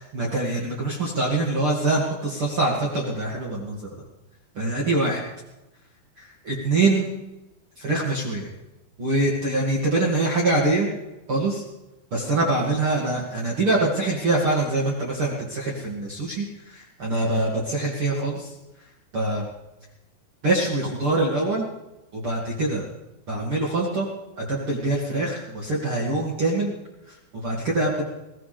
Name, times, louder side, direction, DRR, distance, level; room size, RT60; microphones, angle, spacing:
voice 1, 0.0-4.0 4.6-5.2 6.2-7.1 7.8-8.5 9.0-10.9 11.3-11.6 12.1-18.5 19.1-19.4 20.4-21.6 22.1-22.8 23.3-24.1 24.4-26.7 27.1-28.0, right 2 dB, 45° right, -3 dB, 1.7 m, -24 dB
21.5 x 17.0 x 3.4 m, 0.99 s
omnidirectional pair, 5.9 m